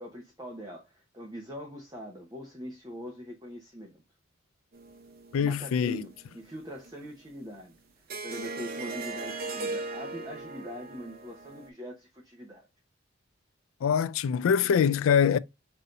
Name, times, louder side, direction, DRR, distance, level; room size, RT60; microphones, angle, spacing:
voice 1, 0.0-4.0 5.4-7.7 8.2-12.7, equal, 20° right, 0.9 m, -42 dB
sound 1, 4.7-6.6 6.8-7.0 8.1-11.7, right 3 dB, 50° right, 0.6 m, -38 dB
voice 2, 5.3-6.0 13.8-15.4, left 7 dB, 85° left, 0.3 m, -24 dB
5.5 x 2.8 x 2.5 m
head